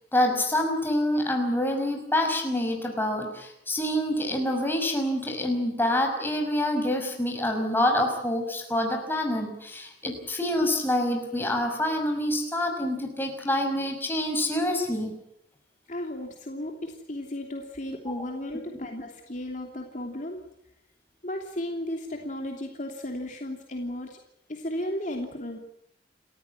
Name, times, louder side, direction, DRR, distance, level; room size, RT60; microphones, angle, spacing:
voice 1, 0.1-15.1, left 1 dB, 10° left, 3 dB, 6.0 m, -26 dB
voice 2, 15.9-20.4 21.2-24.2 24.5-25.6, left 1 dB, 45° left, 2 dB, 3.0 m, -34 dB
29.5 x 14.5 x 9.8 m, 0.76 s
head